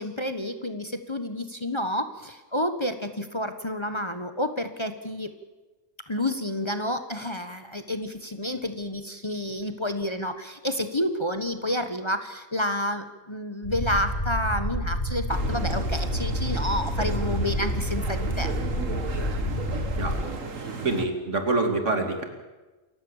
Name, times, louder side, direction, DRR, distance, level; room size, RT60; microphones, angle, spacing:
voice 1, 0.0-5.3 6.1-18.5, left 1 dB, 25° left, 8 dB, 1.2 m, -29 dB
sound 1, 13.6-20.2, equal, 80° left, 7.7 m, -29 dB
sound 2, 15.3-21.1, right 4 dB, 90° right, 2.2 m, -35 dB
voice 2, 20.0-20.3 20.8-22.2, right 3 dB, 70° right, 5 dB, 3.1 m, -26 dB
27.5 x 16.0 x 7.3 m, 1.2 s
omnidirectional pair, 1.3 m